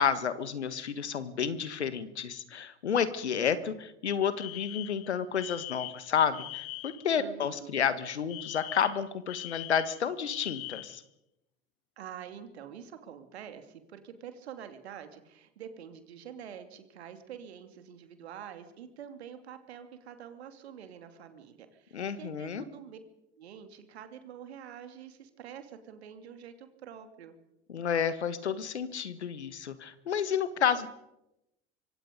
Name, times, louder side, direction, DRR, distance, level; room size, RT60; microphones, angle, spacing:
voice 1, 0.0-11.0 21.9-22.6 27.7-30.9, left 7 dB, 75° left, 14 dB, 1.6 m, -30 dB
Alarm, 4.4-7.1 8.3-11.0, left 21 dB, 45° left, 1.0 m, -42 dB
voice 2, 7.2-7.7 12.0-23.0 23.3-27.3, right 8 dB, 70° right, 8 dB, 2.7 m, -46 dB
25.5 x 24.0 x 5.3 m, 0.90 s
figure-of-eight pair, 70°, 33 cm